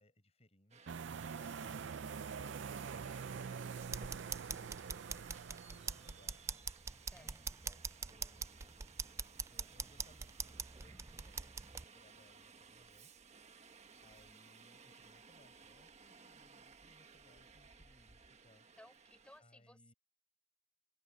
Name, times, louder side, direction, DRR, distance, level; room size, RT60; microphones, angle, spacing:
voice 1, 0.0-1.8 2.2-5.3 5.7-6.4 7.1-9.1 9.5-13.1 14.0-18.7 19.4-19.9, left 1 dB, 35° left, 7.8 m, -67 dB
Subway metro underground, 0.7-19.4, right 5 dB, 35° right, 1.4 m, -60 dB
sound 1, 0.9-6.4, right 6 dB, 80° right, 0.5 m, -45 dB
voice 2, 1.4-1.9 7.1-7.8 18.8-19.9, left 1 dB, 5° left, 4.9 m, -62 dB
sound 2, 3.8-11.8, right 5 dB, 15° right, 0.3 m, -44 dB
open air
head